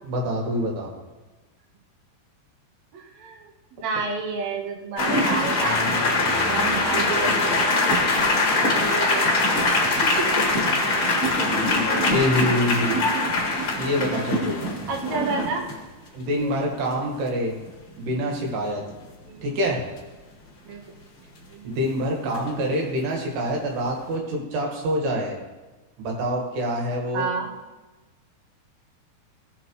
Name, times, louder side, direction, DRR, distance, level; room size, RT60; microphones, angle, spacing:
voice 1, 0.0-0.9 12.1-13.0 13.8-14.6 16.1-17.5 18.0-18.8 19.4-19.8 21.7-25.4 26.0-27.3, equal, 80° right, -1 dB, 3.7 m, -25 dB
voice 2, 2.9-6.2 6.4-7.9 8.4-9.6 10.2-10.3 14.9-15.6 16.4-16.5 19.2-19.5 20.7-20.8 21.5-21.8 27.1-27.5, right 4 dB, 60° right, 1 dB, 2.0 m, -31 dB
sound 1, 5.0-15.7 17.7-17.8 18.1-18.3 22.3-22.6, left 2 dB, 45° left, 1.2 m, -22 dB
17.0 x 5.9 x 3.1 m, 1.2 s
omnidirectional pair, 4.7 m